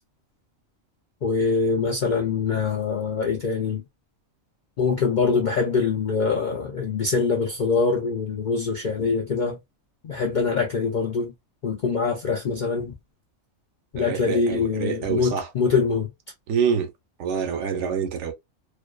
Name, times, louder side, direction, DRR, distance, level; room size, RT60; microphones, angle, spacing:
voice 1, 1.2-3.8 4.8-9.6 10.0-11.3 11.6-12.9 13.9-16.1, left 4 dB, 60° left, 0.4 m, -24 dB
voice 2, 14.0-15.5 16.5-16.9 17.2-18.3, right 7 dB, 70° right, 0.8 m, -26 dB
2.5 x 2.2 x 2.2 m
omnidirectional pair, 1.4 m